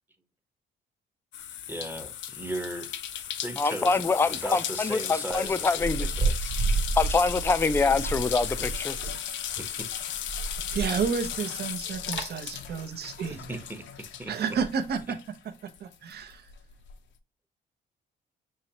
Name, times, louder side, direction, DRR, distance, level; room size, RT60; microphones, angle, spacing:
sound 1, 1.3-15.4 15.7-16.9, left 10 dB, 70° left, 0.6 m, -36 dB
voice 1, 1.7-2.9 3.4-6.6 7.8-8.0 8.6-8.7 9.6-9.9 13.5-14.6, right 1 dB, 10° right, 0.8 m, -37 dB
voice 2, 3.6-6.1 7.0-9.0, left 4 dB, 10° left, 0.3 m, -25 dB
sound 2, 5.3-9.2 9.5-13.5 14.5-15.0, right 3 dB, 80° right, 1.1 m, -31 dB
voice 3, 10.7-13.6 14.3-15.2 15.6-16.5, right 6 dB, 55° right, 0.7 m, -31 dB
5.7 x 3.0 x 2.8 m
cardioid pair, 90°, 20 cm